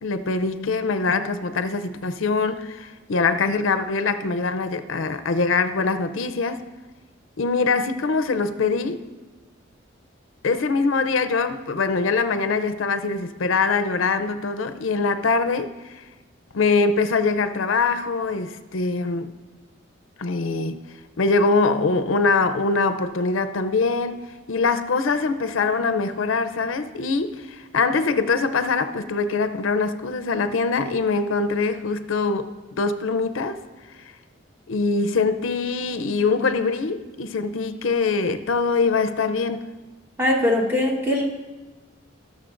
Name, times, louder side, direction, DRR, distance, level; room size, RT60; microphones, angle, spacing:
voice 1, 0.0-6.6 7.4-9.0 10.4-15.7 16.5-19.3 20.2-20.8 21.2-24.2 24.5-33.6 34.7-39.6, left 4 dB, 85° left, 10 dB, 0.5 m, -23 dB
voice 2, 40.2-41.3, left 1 dB, 10° right, -1 dB, 1.2 m, -21 dB
19.5 x 6.6 x 2.5 m, 1.2 s
head